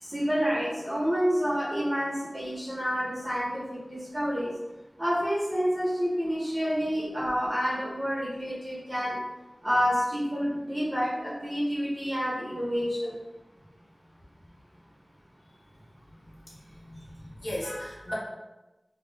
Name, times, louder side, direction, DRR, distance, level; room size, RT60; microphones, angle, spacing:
voice 1, 0.0-4.5 5.0-9.2 9.6-13.2, equal, 35° right, -8 dB, 0.8 m, -28 dB
voice 2, 16.5-18.1, left 1 dB, 80° left, -5 dB, 0.7 m, -37 dB
2.3 x 2.1 x 3.2 m, 1.1 s
wide cardioid pair, 55°, 0 cm